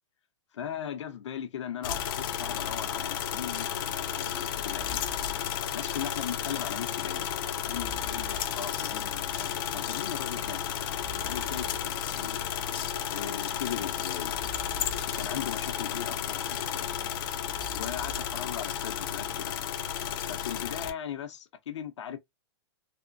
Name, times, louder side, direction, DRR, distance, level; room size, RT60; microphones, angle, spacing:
voice 1, 0.5-5.2 5.7-7.3 7.6-10.8 11.2-12.4 13.1-14.4 15.1-16.9 17.7-19.5 20.2-22.2, left 9 dB, 80° left, 0.8 m, -38 dB
sound 1, 1.8-20.9, left 9 dB, 50° left, 0.6 m, -33 dB
3.5 x 2.1 x 2.5 m
hypercardioid pair, 145°, 15 cm